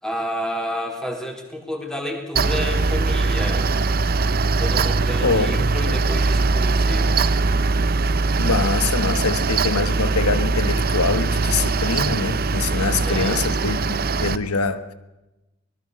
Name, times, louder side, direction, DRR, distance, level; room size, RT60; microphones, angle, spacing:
voice 1, 0.0-3.7 4.6-7.1 12.7-13.4, equal, 5° left, 3.7 m, -30 dB
Mechanical fan, 2.4-14.4, right 3 dB, 45° right, 0.8 m, -21 dB
voice 2, 5.2-6.0 8.4-14.9, left 4 dB, 90° left, 1.5 m, -24 dB
24.5 x 18.5 x 6.5 m
head